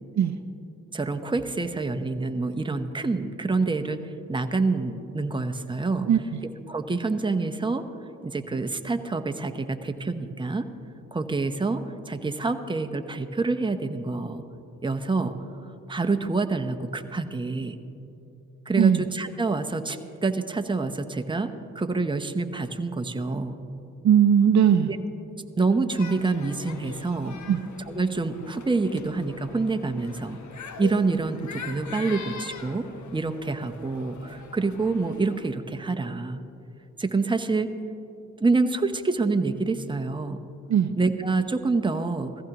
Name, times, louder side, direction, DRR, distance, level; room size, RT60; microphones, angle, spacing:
voice 1, 0.9-4.0 4.3-6.1 6.7-7.9 8.2-10.6 11.1-14.4 14.8-15.3 15.9-17.8 18.7-23.6 24.9-25.0 25.6-27.4 27.9-30.4 30.8-32.8 33.1-36.4 37.0-37.7 38.4-40.4 41.0-42.4, right 3 dB, 15° right, 7 dB, 0.8 m, -27 dB
voice 2, 6.1-6.4 18.8-19.0 24.0-24.9 27.5-27.6 40.7-40.9, right 8 dB, 55° right, 10 dB, 0.6 m, -19 dB
sound 1, 25.9-35.5, left 5 dB, 60° left, 1.1 m, -42 dB
16.5 x 14.5 x 2.9 m, 2.7 s
supercardioid pair, 45°, 33 cm